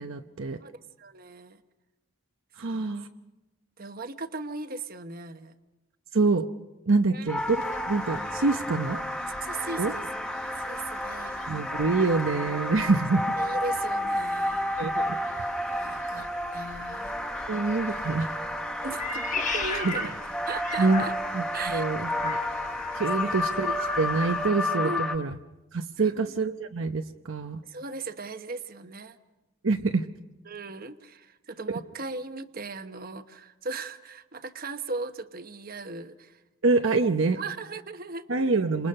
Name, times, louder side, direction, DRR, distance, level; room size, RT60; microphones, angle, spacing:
voice 1, 0.0-0.6 2.6-3.1 6.1-6.5 6.9-9.0 9.8-9.9 11.5-13.3 14.8-15.2 17.5-18.3 19.8-19.9 20.8-21.0 21.3-22.4 22.9-25.3 25.7-27.6 29.6-30.0 36.6-37.4 38.3-38.9, right 3 dB, 65° right, 6 dB, 0.8 m, -26 dB
voice 2, 0.6-1.6 2.6-3.0 3.8-5.5 7.1-7.3 8.9-9.0 9.4-10.1 10.5-11.5 12.0-12.1 13.4-15.1 15.7-16.3 16.5-17.2 18.8-20.1 20.5-21.1 21.5-21.8 23.1-23.4 24.8-25.2 26.0-26.3 27.6-29.2 30.4-36.4 37.0-37.1 37.3-38.3, right 3 dB, 45° right, 9 dB, 1.1 m, -38 dB
sound 1, 7.3-25.2, left 1 dB, 5° left, 0.9 m, -31 dB
sound 2, 7.4-24.5, left 3 dB, 70° left, 1.8 m, -48 dB
Meow, 18.9-21.5 22.1-24.1, left 3 dB, 35° left, 1.4 m, -35 dB
29.5 x 27.0 x 5.5 m, 1.0 s
head